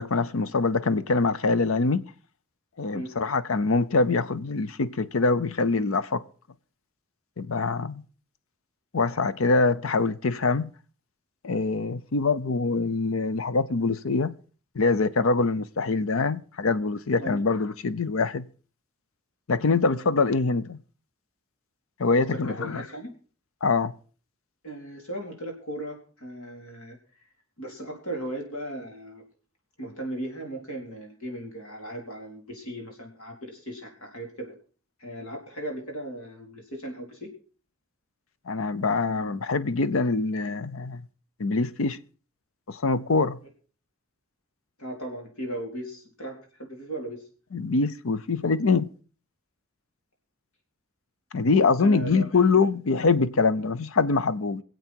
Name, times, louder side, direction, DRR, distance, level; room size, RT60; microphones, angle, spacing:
voice 1, 0.0-2.0 2.8-6.2 7.4-8.0 8.9-10.7 11.4-14.3 14.8-18.5 19.5-20.8 22.0-22.8 23.6-23.9 38.5-41.0 41.4-42.0 42.7-43.4 47.5-48.9 51.3-54.6, left 4 dB, 75° left, 0.7 m, -24 dB
voice 2, 22.2-23.1 24.6-27.0 27.6-29.2 29.8-34.5 35.0-37.3 44.8-47.2 51.8-52.6, right 1 dB, 90° left, 4.1 m, -37 dB
24.0 x 8.0 x 4.5 m
head